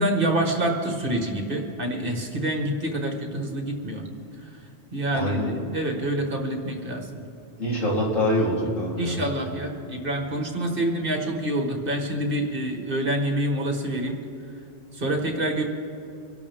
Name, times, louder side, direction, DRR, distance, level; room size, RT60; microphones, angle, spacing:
voice 1, 0.0-4.0 4.9-7.1 9.0-14.1 14.9-15.6, right 1 dB, 45° right, 2 dB, 1.7 m, -27 dB
voice 2, 5.1-5.5 7.6-9.2, equal, 75° left, -6 dB, 3.9 m, -24 dB
25.0 x 12.0 x 3.6 m, 2.8 s
omnidirectional pair, 1.3 m